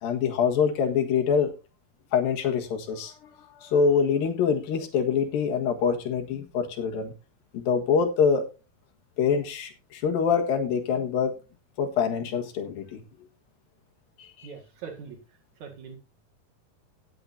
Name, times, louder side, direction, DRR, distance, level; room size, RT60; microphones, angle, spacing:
voice 1, 0.0-1.5 2.1-7.1 7.5-8.4 9.2-11.3 11.8-13.0 14.2-14.5, left 6 dB, 75° left, 3 dB, 3.4 m, -25 dB
voice 2, 14.4-15.2 15.6-16.0, right 6 dB, 55° right, 3 dB, 3.0 m, -41 dB
18.0 x 7.8 x 2.7 m, 0.30 s
omnidirectional pair, 4.2 m